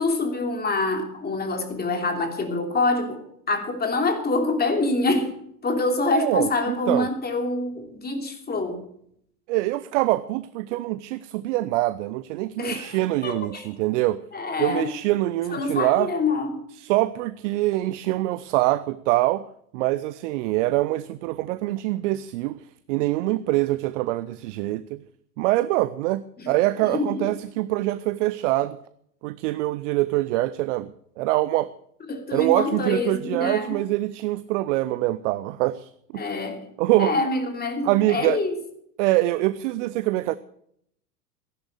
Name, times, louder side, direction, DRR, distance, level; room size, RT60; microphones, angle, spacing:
voice 1, 0.0-3.2 3.5-5.3 5.6-8.8 12.6-13.0 13.2-13.7 14.3-14.9 15.5-16.5 26.4-26.5 26.8-27.3 32.1-33.8 36.1-36.6 37.0-38.6, left 3 dB, 20° left, 5 dB, 3.1 m, -26 dB
voice 2, 6.1-7.1 9.5-14.2 14.6-16.1 16.8-19.5 19.7-22.5 22.9-25.0 25.4-28.8 29.2-31.7 32.3-36.2 36.8-37.1 37.8-38.4 39.0-40.4, right 17 dB, 50° right, 15 dB, 0.7 m, -24 dB
15.0 x 11.5 x 6.5 m, 0.70 s
figure-of-eight pair, 85°, 47 cm